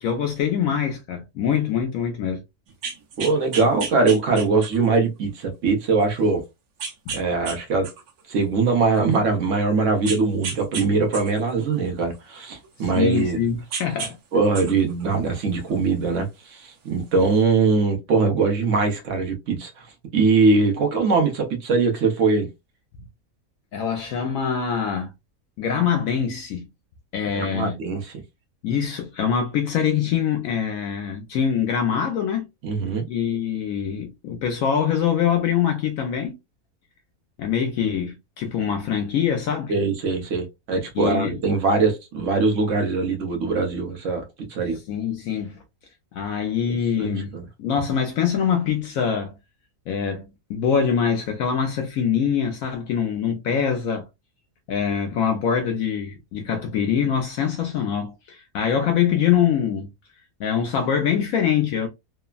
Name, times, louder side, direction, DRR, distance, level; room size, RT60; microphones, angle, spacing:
voice 1, 0.0-2.4 7.1-7.2 12.9-14.2 23.7-25.1 25.6-26.7 27.1-27.7 28.6-32.5 33.1-36.3 37.4-39.7 41.0-41.4 44.9-45.6 46.1-47.3 47.6-49.4 49.9-54.1 54.7-59.9 60.4-61.9, left 8 dB, 70° left, 0.9 m, -24 dB
sound 1, 2.7-5.0 5.5-5.6 6.8-7.6 7.8-9.2 10.1-10.9 11.1-13.3 13.7-14.1 14.4-15.9 16.9-17.0, right 5 dB, 80° right, 1.2 m, -33 dB
voice 2, 3.2-6.4 7.1-7.9 8.3-13.4 14.3-19.9 20.1-22.5 27.3-28.2 32.6-33.0 39.7-44.8 46.7-47.4, right 4 dB, 60° right, 1.1 m, -22 dB
3.3 x 2.0 x 2.2 m
omnidirectional pair, 1.6 m